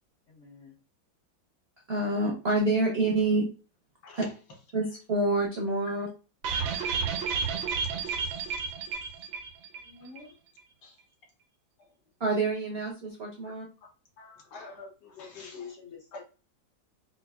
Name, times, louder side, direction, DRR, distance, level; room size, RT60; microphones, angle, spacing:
voice 1, 0.3-0.8 9.8-10.3 14.5-16.2, left 5 dB, 90° left, 0.6 m, -46 dB
voice 2, 1.9-3.5 4.2-4.3 4.7-6.1 12.2-13.6, right 2 dB, 65° right, 0.6 m, -27 dB
sound 1, 6.4-9.9 10.2-10.3 10.6-10.7, right 6 dB, 90° right, 1.4 m, -31 dB
voice 3, 6.6-7.0 7.4-7.5 8.1-8.7 10.8-11.0 14.2-14.7 15.2-15.5, left 3 dB, 65° left, 1.5 m, -51 dB
4.3 x 2.4 x 2.3 m
omnidirectional pair, 2.1 m